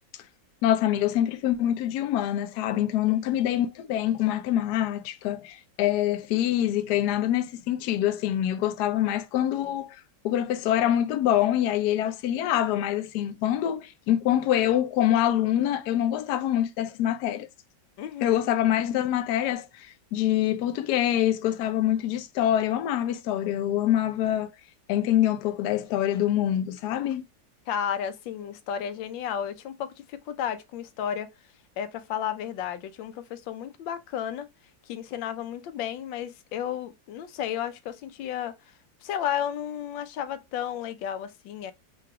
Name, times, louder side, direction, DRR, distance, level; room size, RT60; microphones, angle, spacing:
voice 1, 0.6-10.0 10.2-17.5 18.2-24.5 24.9-27.2, left 12 dB, 70° left, 1.0 m, -25 dB
voice 2, 3.1-3.4 18.0-18.4 27.7-31.3 31.8-34.5 34.9-38.7 39.0-41.7, left 9 dB, 90° left, 1.3 m, -33 dB
3.8 x 2.4 x 4.6 m
omnidirectional pair, 2.0 m